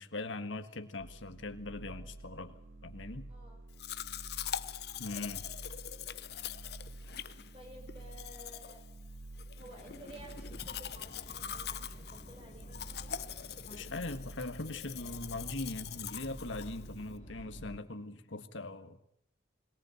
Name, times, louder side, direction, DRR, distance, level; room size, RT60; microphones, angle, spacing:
voice 1, 0.0-3.3 5.0-5.4 13.8-19.0, left 2 dB, 90° left, 8 dB, 1.6 m, -41 dB
sound 1, 1.0-17.8, right 2 dB, 65° right, 0.9 m, -50 dB
voice 2, 3.3-3.6 7.5-8.9 9.6-12.7, right 1 dB, 30° right, 3 dB, 5.2 m, -53 dB
Domestic sounds home sounds, 3.8-17.2, left 9 dB, 55° left, 0.8 m, -43 dB
Subway metro underground, 9.8-17.8, left 1 dB, 35° left, 1.1 m, -54 dB
21.5 x 18.5 x 7.8 m, 0.72 s
head